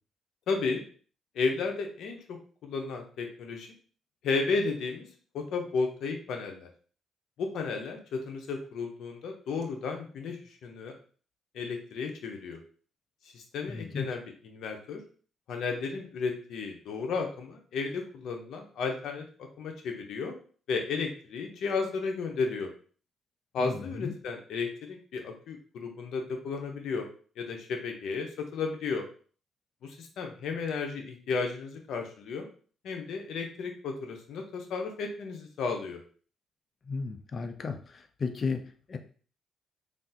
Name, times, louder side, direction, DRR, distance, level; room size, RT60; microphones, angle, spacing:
voice 1, 0.5-0.8 1.3-3.7 4.2-5.1 5.3-6.7 7.4-10.9 11.5-12.6 13.3-15.0 15.5-20.3 20.7-22.7 23.5-27.1 27.4-29.0 29.8-32.5 32.8-36.0, left 4 dB, 75° left, 3 dB, 0.7 m, -33 dB
voice 2, 13.7-14.1 23.6-24.1 36.8-39.0, left 4 dB, 45° left, 6 dB, 0.4 m, -34 dB
3.3 x 2.4 x 2.7 m, 0.43 s
cardioid pair, 90°, 0 cm